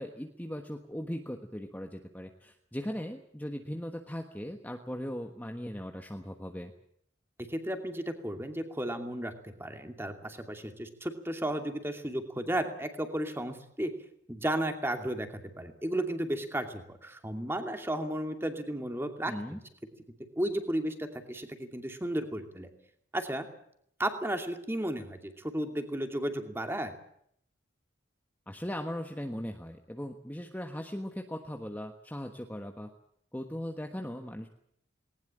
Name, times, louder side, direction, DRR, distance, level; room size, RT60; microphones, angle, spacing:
voice 1, 0.0-6.7 19.3-19.6 28.5-32.9 33.3-34.5, equal, 10° left, 4 dB, 1.3 m, -39 dB
voice 2, 7.5-13.9 14.3-19.3 20.4-22.7 23.1-23.5 24.0-26.9, right 1 dB, 10° right, 5 dB, 2.5 m, -34 dB
20.0 x 19.0 x 8.8 m, 0.68 s
head